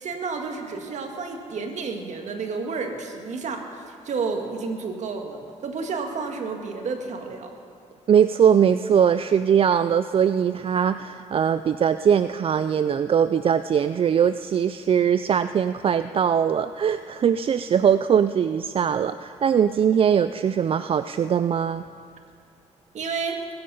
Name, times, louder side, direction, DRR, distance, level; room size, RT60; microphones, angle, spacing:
voice 1, 0.0-7.5 22.9-23.4, right 4 dB, 65° right, 4 dB, 1.8 m, -31 dB
voice 2, 8.1-21.8, right 8 dB, 45° right, 12 dB, 0.4 m, -21 dB
21.0 x 8.8 x 5.5 m, 2.3 s
cardioid pair, 85°, 13 cm